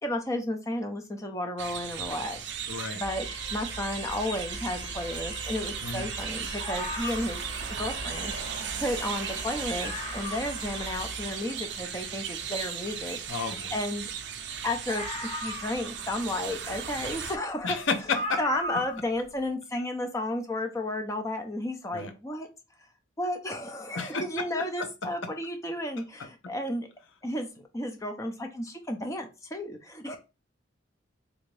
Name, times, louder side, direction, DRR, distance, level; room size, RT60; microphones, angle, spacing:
voice 1, 0.0-2.4 2.7-7.4 7.8-8.3 8.8-14.1 14.6-15.0 15.3-17.8 18.4-22.5 23.2-26.9 27.2-30.2, left 1 dB, 15° left, 4 dB, 0.5 m, -33 dB
sound 1, 1.6-17.4, right 7 dB, 60° right, 0.4 m, -37 dB
voice 2, 2.7-3.0 5.8-6.1 13.3-13.7 17.6-18.4 21.9-22.1 23.9-24.2, left 4 dB, 70° left, 6 dB, 0.7 m, -31 dB
sound 2, 3.0-11.6, right 1 dB, 20° right, 0.9 m, -40 dB
sound 3, 6.6-7.5 8.6-8.7 9.0-9.1 9.5-9.6 9.8-10.6 11.1-11.2 14.9-16.1 17.3-17.4 18.1-19.1 19.3-19.4, left 1 dB, 30° left, 1.0 m, -36 dB
3.4 x 2.6 x 3.2 m, 0.29 s
head